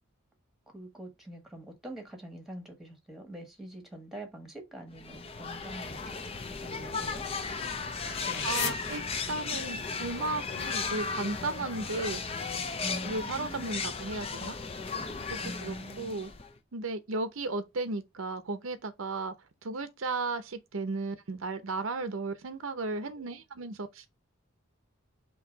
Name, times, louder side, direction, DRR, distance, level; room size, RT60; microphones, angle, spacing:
voice 1, 0.7-6.2 6.6-7.2 8.0-8.8 12.8-13.9 15.4-16.2, right 1 dB, ahead, 1.4 m, -44 dB
sound 1, 5.0-16.6, left 5 dB, 30° left, 0.6 m, -36 dB
sound 2, 6.3-9.8, left 6 dB, 55° left, 1.0 m, -40 dB
voice 2, 8.4-9.0 9.3-12.2 13.0-14.6 15.3-16.3 16.7-19.3 19.6-24.1, right 3 dB, 80° right, 0.7 m, -35 dB
4.6 x 2.9 x 3.9 m
head